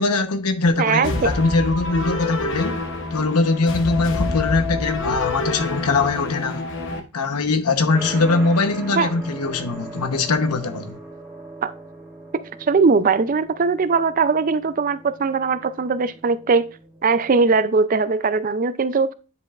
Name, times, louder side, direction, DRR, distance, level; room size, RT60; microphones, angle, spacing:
voice 1, 0.0-2.8 3.1-6.7 7.1-11.0, left 3 dB, 90° left, 0.9 m, -21 dB
voice 2, 0.8-1.3 9.0-9.1 11.6-11.7 12.7-16.7 17.0-19.1, right 4 dB, 35° right, 0.4 m, -20 dB
sound 1, 1.0-7.0, left 2 dB, 55° left, 0.9 m, -27 dB
sound 2, 7.9-17.6, equal, 10° right, 1.8 m, -39 dB
9.6 x 5.2 x 2.4 m
head